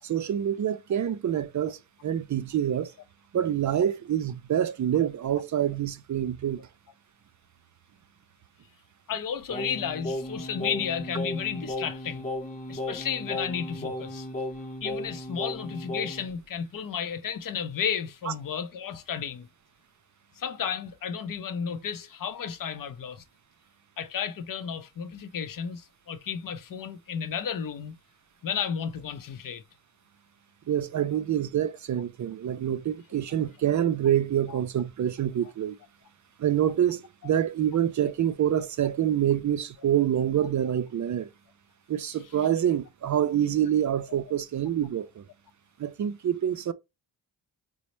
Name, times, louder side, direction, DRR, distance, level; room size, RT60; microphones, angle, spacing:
voice 1, 0.0-2.9 3.3-6.7 18.3-18.4 30.7-35.8 36.4-41.3 41.9-45.2 45.8-46.7, right 10 dB, 45° right, 0.4 m, -26 dB
voice 2, 9.1-12.3 12.7-14.3 14.8-19.5 20.4-23.2 24.0-28.0 28.4-29.6 34.5-34.6, left 7 dB, 50° left, 0.6 m, -33 dB
Singing, 9.5-16.3, left 1 dB, 20° left, 0.9 m, -35 dB
4.0 x 2.1 x 3.0 m
cardioid pair, 70°, 45 cm